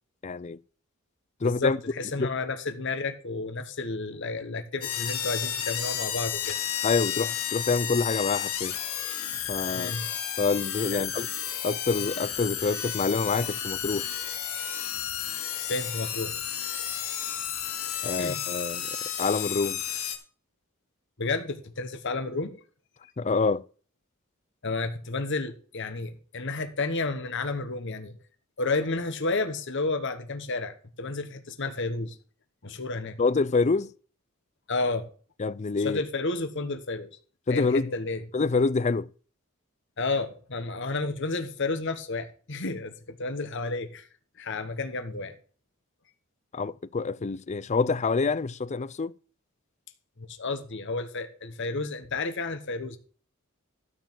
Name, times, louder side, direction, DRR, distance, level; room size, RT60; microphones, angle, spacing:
voice 1, 0.2-0.6 1.4-1.8 2.2-2.3 6.8-8.7 9.5-9.9 10.4-11.3 11.6-14.0 18.0-18.9 19.2-19.8 23.2-23.6 33.2-33.9 35.4-36.0 37.5-37.9 38.3-39.1 46.5-49.1, left 4 dB, 35° left, 0.4 m, -26 dB
voice 2, 1.4-6.6 9.7-10.1 10.9-11.1 15.7-16.4 18.2-18.4 21.2-22.5 24.6-28.2 28.6-32.2 32.6-33.2 34.7-35.0 35.8-37.1 37.5-38.2 40.0-44.1 44.4-45.4 50.2-53.0, left 3 dB, 60° left, 1.3 m, -31 dB
sound 1, 4.8-20.2, left 10 dB, 90° left, 2.7 m, -32 dB
13.0 x 4.8 x 7.5 m
head